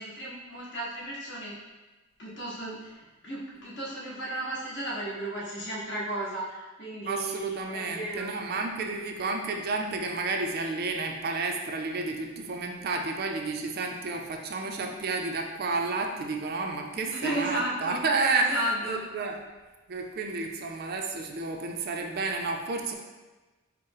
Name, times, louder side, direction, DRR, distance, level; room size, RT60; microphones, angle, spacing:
voice 1, 0.0-1.6 2.2-8.3 16.9-18.0 18.3-19.0, right 1 dB, 65° left, -6 dB, 1.4 m, -34 dB
voice 2, 7.1-19.4 19.9-22.9, right 3 dB, 50° right, 3 dB, 0.4 m, -31 dB
4.5 x 2.0 x 4.6 m, 1.2 s
head